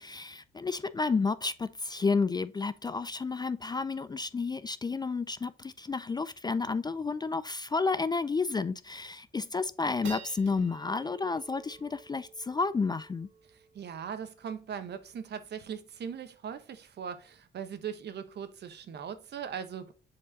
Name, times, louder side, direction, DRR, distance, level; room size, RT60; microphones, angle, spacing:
voice 1, 0.0-13.3, left 4 dB, 20° left, 0.4 m, -31 dB
sound 1, 7.4-7.6 8.1-8.2 8.8-9.1 9.6-16.1, right 6 dB, 80° right, 2.2 m, -52 dB
voice 2, 13.7-19.9, right 7 dB, 55° right, 1.0 m, -39 dB
7.5 x 4.6 x 2.7 m
cardioid pair, 90°, 20 cm